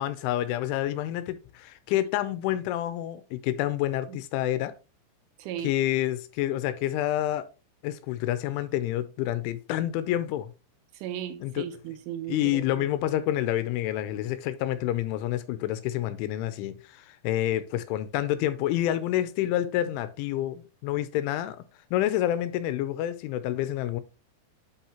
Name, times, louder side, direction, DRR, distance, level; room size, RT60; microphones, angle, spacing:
voice 1, 0.0-4.7 5.6-7.5 7.8-10.5 11.4-11.7 12.3-21.6 21.9-24.0, left 13 dB, 85° left, 3.1 m, -28 dB
voice 2, 5.4-5.7 10.9-12.9, right 11 dB, 85° right, 3.3 m, -36 dB
8.5 x 5.6 x 2.9 m
omnidirectional pair, 5.5 m